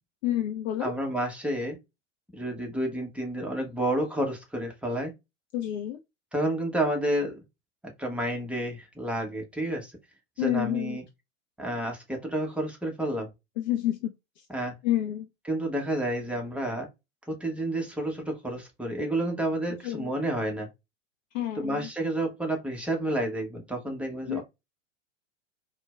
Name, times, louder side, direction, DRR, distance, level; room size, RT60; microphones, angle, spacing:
voice 1, 0.2-0.9 5.5-6.0 10.4-11.0 13.6-14.5 14.8-15.3 19.8-20.1 21.3-21.9 24.3-24.4, left 12 dB, 40° left, 0.4 m, -29 dB
voice 2, 0.8-1.8 2.3-5.1 6.3-7.4 8.0-9.9 10.4-11.0 11.6-13.3 14.5-14.7 15.5-16.9 17.3-20.7 21.5-24.4, right 1 dB, 5° right, 0.8 m, -30 dB
4.2 x 2.1 x 2.3 m
figure-of-eight pair, 95°, 38 cm